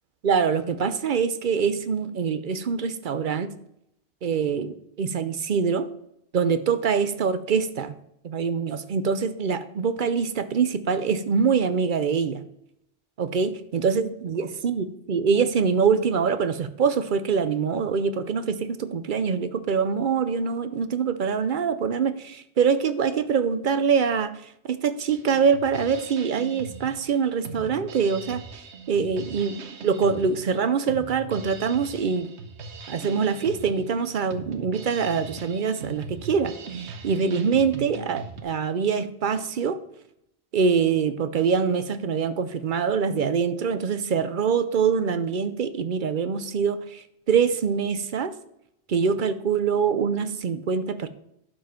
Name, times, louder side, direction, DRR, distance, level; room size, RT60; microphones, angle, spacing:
voice 1, 0.2-3.5 4.2-5.8 6.3-8.0 8.2-12.4 13.2-24.3 24.7-28.4 28.9-32.3 32.9-39.8 40.5-48.3 48.9-51.1, right 6 dB, 55° right, 12 dB, 0.7 m, -24 dB
Drum kit, 25.1-38.4, right 4 dB, 80° right, 1.2 m, -40 dB
11.0 x 5.3 x 5.8 m, 0.79 s
omnidirectional pair, 1.1 m